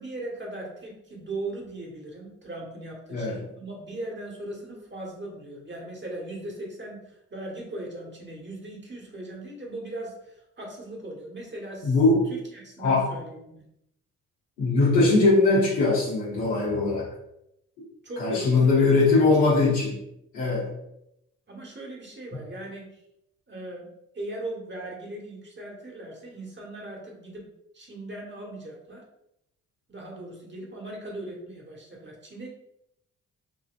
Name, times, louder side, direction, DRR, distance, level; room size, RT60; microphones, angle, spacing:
voice 1, 0.0-12.0 12.3-13.6 18.0-19.3 19.6-19.8 21.5-23.0 23.5-23.9 24.1-27.5 27.7-29.0 29.9-32.5, right 2 dB, 30° right, -2 dB, 1.4 m, -39 dB
voice 2, 11.8-12.2 12.8-13.1 14.6-17.1 18.2-20.0 20.3-20.7, left 3 dB, 90° left, -8 dB, 1.1 m, -21 dB
4.1 x 2.6 x 2.5 m, 0.81 s
hypercardioid pair, 45°, 36 cm